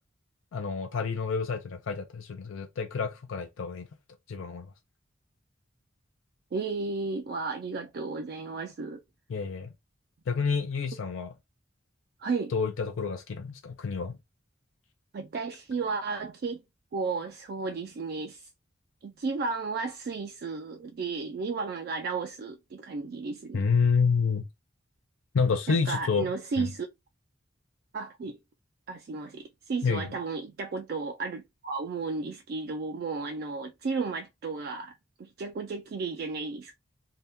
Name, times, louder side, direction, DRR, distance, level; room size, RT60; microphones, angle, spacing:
voice 1, 0.5-3.9 4.3-4.7 9.3-9.7 10.3-11.3 12.5-14.2 23.5-24.5 25.3-26.3 26.6-26.7 29.8-30.1, left 5 dB, 85° left, 0.4 m, -28 dB
voice 2, 6.5-9.0 12.2-12.5 15.1-16.6 16.9-18.5 19.0-23.6 25.7-26.9 27.9-28.4 28.9-36.8, right 4 dB, 50° right, 0.3 m, -33 dB
2.7 x 2.2 x 3.3 m
head